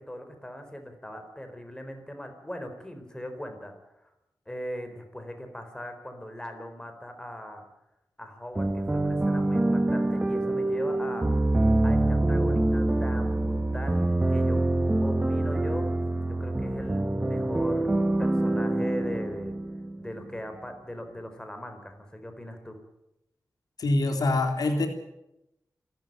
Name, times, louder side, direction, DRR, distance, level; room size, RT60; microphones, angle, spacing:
voice 1, 0.0-3.7 4.0-4.1 4.5-7.6 8.2-11.3 11.8-14.6 15.0-15.9 16.3-17.9 18.2-19.6 20.0-22.8, equal, 10° left, 6 dB, 4.2 m, -39 dB
sound 1, 8.6-20.3, right 2 dB, 15° right, 1.2 m, -25 dB
voice 2, 23.8-24.9, left 2 dB, 85° left, 5 dB, 3.4 m, -24 dB
28.0 x 13.0 x 9.3 m, 0.88 s
wide cardioid pair, 105°, 7 cm